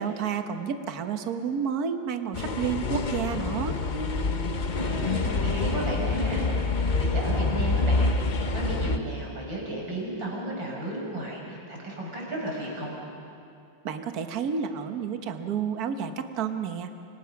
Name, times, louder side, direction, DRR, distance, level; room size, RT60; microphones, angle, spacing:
voice 1, 0.0-3.8 13.8-16.9, right 7 dB, 55° right, 7 dB, 1.7 m, -30 dB
sound 1, 2.3-9.0, left 3 dB, 40° left, 0.6 m, -26 dB
voice 2, 4.7-12.9, right 1 dB, 75° right, -2 dB, 6.9 m, -34 dB
29.5 x 26.5 x 5.9 m, 2.6 s
omnidirectional pair, 2.1 m